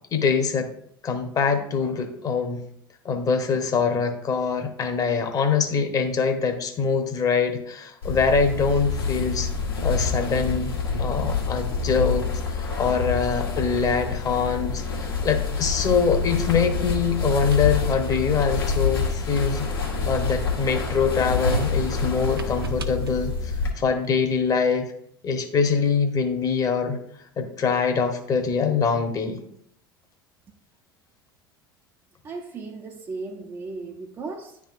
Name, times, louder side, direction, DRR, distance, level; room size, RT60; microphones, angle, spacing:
voice 1, 0.1-0.7 1.0-2.6 3.0-9.5 9.8-10.7 11.0-12.3 12.6-19.6 20.1-23.3 23.8-24.9 25.2-27.0 27.4-29.4, left 5 dB, 30° left, 1.0 m, -24 dB
sound 1, 8.0-23.7, left 4 dB, 75° left, 1.4 m, -27 dB
sound 2, 17.3-20.4 20.8-24.2, right 4 dB, 80° right, 0.5 m, -38 dB
voice 2, 32.2-34.6, right 3 dB, 25° right, 0.6 m, -36 dB
10.5 x 3.6 x 2.5 m
figure-of-eight pair, 70°, 12 cm